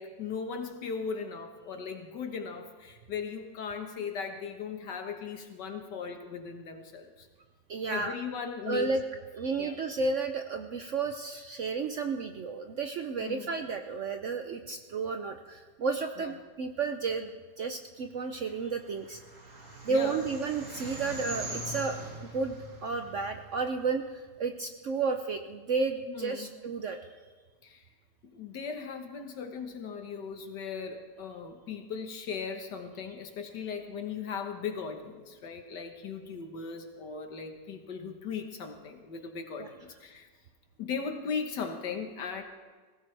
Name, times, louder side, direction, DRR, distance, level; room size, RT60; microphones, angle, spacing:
voice 1, 0.0-7.3 7.9-8.9 9.6-9.8 13.2-13.5 16.2-16.3 19.9-20.2 26.1-26.5 27.6-27.9 28.3-40.3 40.8-42.4, left 6 dB, 75° left, 5 dB, 1.9 m, -38 dB
voice 2, 7.7-8.2 8.6-9.0 9.3-19.2 19.8-27.1 39.6-39.7, right 4 dB, 60° right, 6 dB, 0.8 m, -32 dB
sound 1, 18.6-24.0, right 1 dB, 45° right, 2.8 m, -42 dB
19.5 x 16.5 x 3.3 m, 1.4 s
omnidirectional pair, 1.9 m